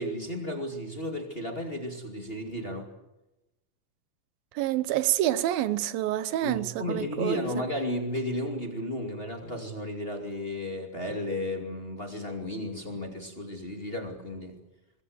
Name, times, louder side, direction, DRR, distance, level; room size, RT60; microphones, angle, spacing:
voice 1, 0.0-2.9 6.4-14.5, left 1 dB, 20° left, 2.2 m, -33 dB
voice 2, 4.6-7.4, right 13 dB, 90° right, 2.7 m, -27 dB
23.5 x 21.5 x 7.9 m
omnidirectional pair, 4.0 m